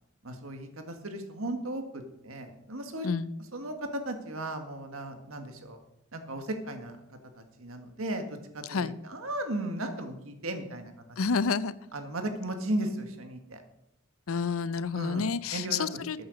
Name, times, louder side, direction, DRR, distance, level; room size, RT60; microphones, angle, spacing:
voice 1, 0.2-3.1 3.5-5.8 6.1-7.0 7.4-10.9 11.9-13.6 14.9-15.9 16.2-16.3, right 1 dB, 75° right, 6 dB, 1.7 m, -36 dB
voice 2, 8.6-9.0 11.2-11.7 14.3-16.2, left 5 dB, 75° left, 16 dB, 0.6 m, -29 dB
13.0 x 8.8 x 5.1 m, 0.83 s
head